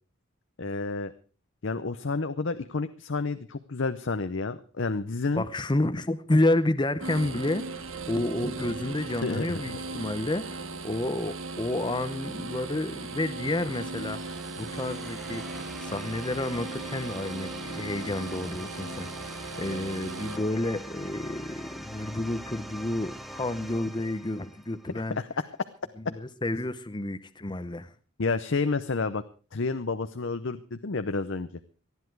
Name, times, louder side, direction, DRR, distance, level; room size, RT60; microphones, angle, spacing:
voice 1, 0.6-1.1 1.6-5.4 9.2-9.6 25.2-25.3 28.2-29.2 29.5-31.5, left 3 dB, 60° left, 0.7 m, -30 dB
voice 2, 5.4-14.2 14.6-25.2 26.2-27.9, left 1 dB, 20° left, 0.7 m, -30 dB
sound 1, 7.0-20.4, right 3 dB, 70° right, 1.5 m, -38 dB
sound 2, 11.3-25.1, equal, ahead, 0.9 m, -44 dB
19.0 x 13.0 x 4.7 m
head